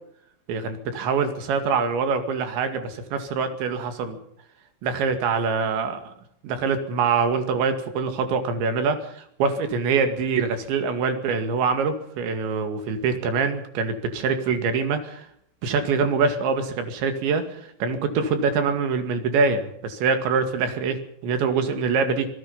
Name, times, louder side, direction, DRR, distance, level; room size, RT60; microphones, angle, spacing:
voice 1, 0.5-4.2 4.8-6.1 6.4-15.3 15.6-22.3, right 5 dB, 70° right, 7 dB, 4.3 m, -24 dB
26.0 x 18.5 x 5.6 m, 0.70 s
omnidirectional pair, 5.7 m